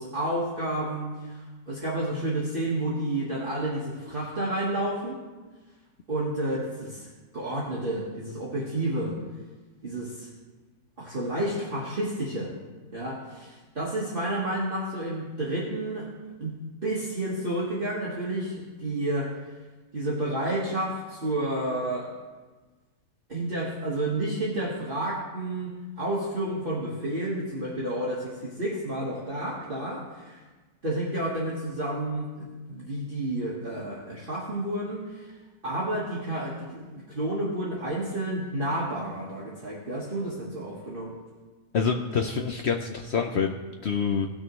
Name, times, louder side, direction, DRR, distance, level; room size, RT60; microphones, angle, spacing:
voice 1, 0.0-5.2 6.1-7.1 7.3-9.2 9.8-10.3 11.0-12.6 12.9-16.1 16.4-19.4 19.9-22.1 23.3-30.4 30.8-35.3 35.6-41.1, right 1 dB, 35° right, -6 dB, 1.5 m, -30 dB
voice 2, 41.7-43.5 43.8-44.3, left 6 dB, 70° left, 3 dB, 0.6 m, -26 dB
17.5 x 6.4 x 3.1 m, 1.3 s
omnidirectional pair, 1.7 m